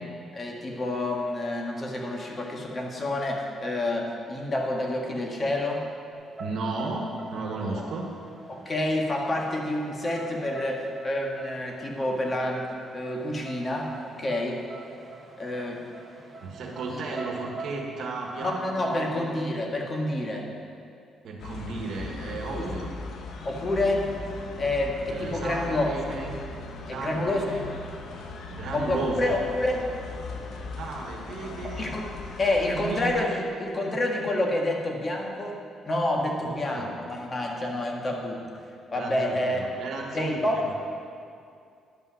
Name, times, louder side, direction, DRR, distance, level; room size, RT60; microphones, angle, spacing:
voice 1, 0.3-5.8 8.5-12.7 12.9-14.6 15.4-15.8 18.4-20.5 22.5-22.6 23.4-24.1 24.6-25.9 26.9-27.6 28.7-29.9 31.7-32.1 32.4-38.4 38.9-39.6 40.1-40.5, left 1 dB, 30° left, 0 dB, 1.6 m, -28 dB
sound 1, 6.1-20.0, right 3 dB, 15° right, 1.9 m, -45 dB
voice 2, 6.4-8.1 16.4-19.1 21.2-22.9 25.1-26.3 26.9-27.7 28.5-29.4 30.8-31.9 32.8-33.4 36.4-37.0 38.9-40.7, right 3 dB, 70° right, 0 dB, 1.4 m, -34 dB
sound 2, 21.4-33.1, left 3 dB, 75° left, 0.8 m, -39 dB
11.0 x 5.6 x 6.2 m, 2.4 s
cardioid pair, 90°, 0 cm